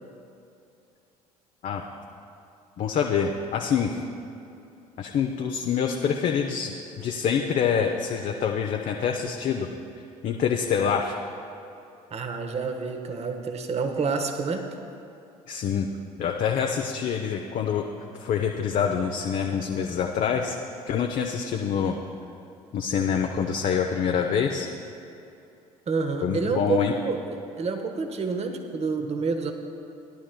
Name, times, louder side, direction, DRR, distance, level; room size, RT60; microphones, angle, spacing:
voice 1, 2.8-4.0 5.0-9.7 10.2-11.2 15.5-15.9 16.2-17.9 18.2-20.6 20.9-22.0 22.7-24.7 26.2-26.9, left 7 dB, 45° left, 2 dB, 0.7 m, -26 dB
voice 2, 12.1-14.6 25.9-29.5, right 4 dB, 35° right, 5 dB, 1.1 m, -28 dB
18.0 x 11.0 x 2.2 m, 2.7 s
figure-of-eight pair, 55°, 19 cm